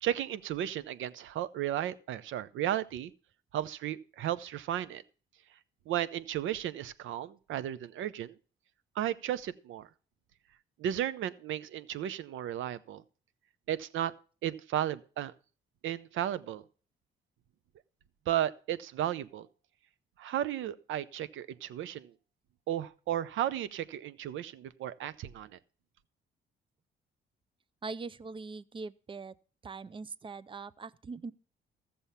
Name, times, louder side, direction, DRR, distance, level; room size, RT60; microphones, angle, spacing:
voice 1, 0.0-3.1 3.5-5.0 5.9-8.4 9.0-9.9 10.8-13.0 13.7-14.1 14.4-15.3 15.8-16.6 18.3-19.5 20.2-22.1 22.7-25.6, right 11 dB, 80° right, 0.7 m, -34 dB
voice 2, 27.8-29.3 29.6-31.3, right 4 dB, 25° right, 0.5 m, -42 dB
14.0 x 7.1 x 5.6 m
cardioid pair, 90°, 20 cm